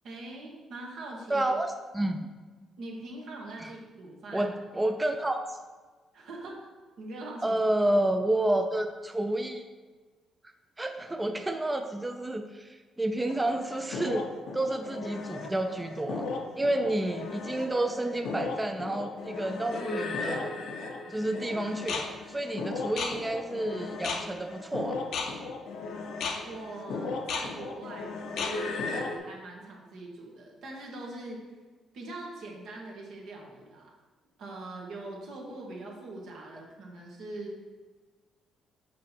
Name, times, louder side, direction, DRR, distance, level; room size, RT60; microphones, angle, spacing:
voice 1, 0.0-1.5 2.8-4.5 6.1-6.7 7.0-7.6 26.4-31.5 31.9-34.0 34.4-37.6, right 2 dB, 80° right, -1 dB, 1.5 m, -42 dB
voice 2, 1.3-2.3 3.6-3.7 4.3-5.6 7.4-9.6 10.8-14.3 14.5-16.3 16.6-20.5 21.1-25.0, right 1 dB, 15° right, 5 dB, 0.4 m, -30 dB
sound 1, 13.3-29.2, left 4 dB, 75° left, 0.7 m, -35 dB
6.2 x 4.3 x 4.4 m, 1.4 s
cardioid pair, 90°, 0 cm